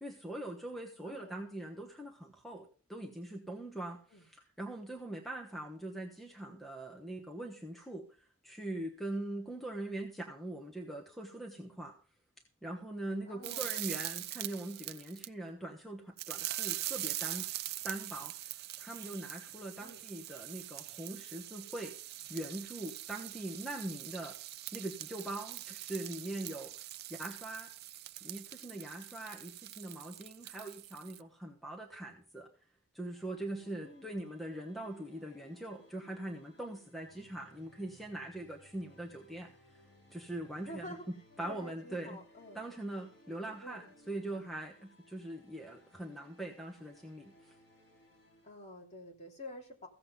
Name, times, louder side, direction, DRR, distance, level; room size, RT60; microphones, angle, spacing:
voice 1, 0.0-12.0 12.6-17.5 17.8-21.9 22.3-24.4 24.7-26.7 27.1-27.7 28.2-32.5 32.9-39.8 40.1-42.2 42.5-47.5, right 1 dB, ahead, 2 dB, 1.2 m, -42 dB
voice 2, 1.0-1.4 4.1-4.2 13.2-13.7 19.8-20.0 33.8-34.1 40.5-41.0 41.4-42.6 43.6-43.8 48.4-49.9, left 1 dB, 30° left, -1 dB, 3.1 m, -48 dB
sound 1, 13.4-15.3 16.2-31.2, right 15 dB, 50° right, 0.5 m, -43 dB
sound 2, 33.1-48.5, left 1 dB, 50° left, 4.6 m, -63 dB
16.0 x 7.8 x 5.3 m, 0.40 s
head